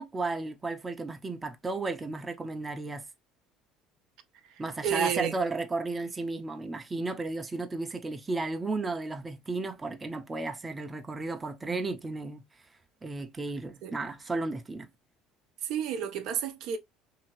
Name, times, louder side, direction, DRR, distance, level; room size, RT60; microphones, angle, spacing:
voice 1, 0.0-3.0 4.6-12.4 13.0-14.9, right 3 dB, 20° right, 0.6 m, -34 dB
voice 2, 4.5-5.3 11.7-11.8 13.8-14.0 15.6-16.8, right 9 dB, 70° right, 0.5 m, -31 dB
2.7 x 2.7 x 3.0 m
supercardioid pair, 80°, 0 cm